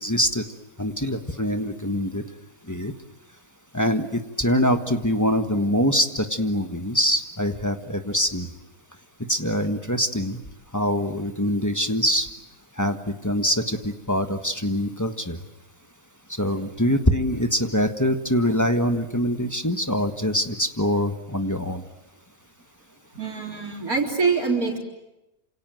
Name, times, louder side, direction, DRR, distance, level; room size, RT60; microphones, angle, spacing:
voice 1, 0.0-0.4 0.8-2.2 2.7-2.9 3.7-8.5 9.3-10.4 10.7-12.3 12.8-15.4 16.3-21.8, equal, 15° left, 6 dB, 1.4 m, -24 dB
voice 2, 23.2-24.8, right 4 dB, 80° right, 0 dB, 4.4 m, -24 dB
28.0 x 27.0 x 7.9 m, 0.95 s
omnidirectional pair, 1.5 m